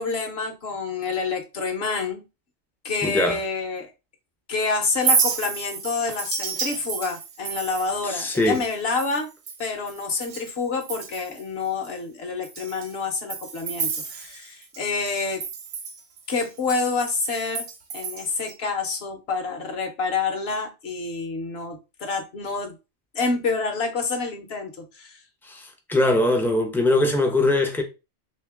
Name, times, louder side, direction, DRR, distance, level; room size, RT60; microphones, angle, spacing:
voice 1, 0.0-2.2 2.8-3.9 4.5-9.3 9.6-15.4 16.3-17.6 17.9-22.8 23.1-25.2, left 4 dB, 55° left, 1.0 m, -28 dB
voice 2, 3.0-3.4 8.0-8.6 25.4-27.8, left 2 dB, 5° left, 0.3 m, -21 dB
Chink clink, 4.9-10.5 10.8-11.4 11.8-11.9 12.4-14.8 15.1-18.5, right 6 dB, 80° right, 1.1 m, -30 dB
3.2 x 2.8 x 3.4 m
omnidirectional pair, 1.3 m